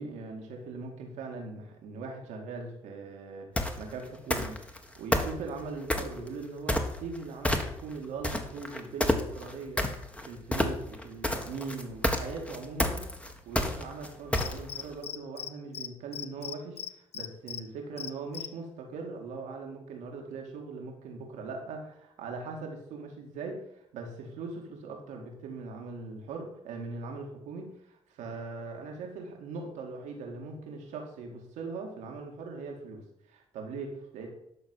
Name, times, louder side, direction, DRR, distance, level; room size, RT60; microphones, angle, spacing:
voice 1, 0.0-3.5 3.8-9.9 10.3-13.0 13.5-34.3, right 4 dB, 85° right, 2 dB, 2.3 m, -40 dB
sound 1, 3.6-3.8 4.3-4.8 5.1-6.2 6.7-7.2 7.4-7.9 8.2-14.8, left 1 dB, 10° left, 1.6 m, -28 dB
Cricket, 14.4-15.5 15.7-17.6 18.0-18.5, left 9 dB, 60° left, 0.7 m, -38 dB
12.0 x 4.2 x 7.9 m, 0.76 s
supercardioid pair, 65°, 12 cm